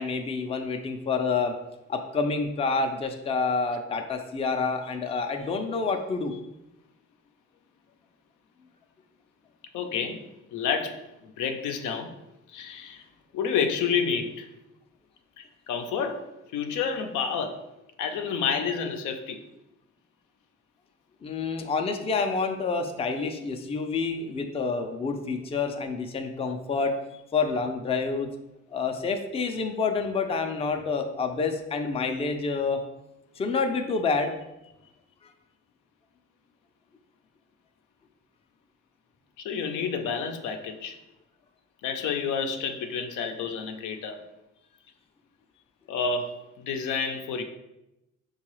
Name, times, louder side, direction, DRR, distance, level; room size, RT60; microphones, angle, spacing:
voice 1, 0.0-1.5 1.9-6.4 21.2-26.9 27.3-28.3 28.7-32.8 33.4-34.4, left 4 dB, 20° left, 5 dB, 0.4 m, -28 dB
voice 2, 9.7-10.2 10.5-12.1 12.5-13.1 13.3-14.5 15.4-16.2 16.5-17.6 18.0-19.4 39.4-41.0 41.8-44.2 45.9-47.4, left 6 dB, 80° left, 6 dB, 0.5 m, -29 dB
4.6 x 2.3 x 3.0 m, 0.93 s
cardioid pair, 90°, 30 cm